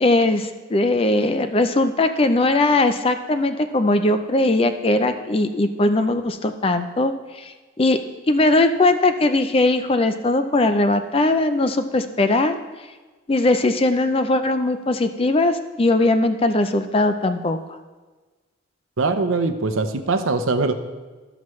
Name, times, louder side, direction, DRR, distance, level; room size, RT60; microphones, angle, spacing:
voice 1, 0.0-8.0 8.3-12.6 13.3-17.6, left 2 dB, 25° left, 9 dB, 0.4 m, -20 dB
voice 2, 19.0-20.7, right 3 dB, 75° right, 8 dB, 0.7 m, -22 dB
14.5 x 5.9 x 3.1 m, 1.3 s
head